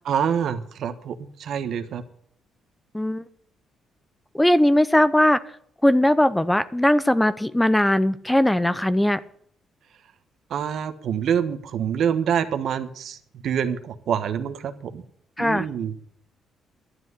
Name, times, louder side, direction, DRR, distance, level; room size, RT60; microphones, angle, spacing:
voice 1, 0.0-1.1 1.4-2.0 10.5-13.2 13.4-15.0 15.4-15.9, right 8 dB, 70° right, 10 dB, 1.3 m, -26 dB
voice 2, 4.3-5.4 5.8-9.2 15.4-15.7, left 1 dB, 5° left, 15 dB, 0.7 m, -19 dB
12.0 x 7.7 x 9.7 m, 0.63 s
cardioid pair, 90°, 0 cm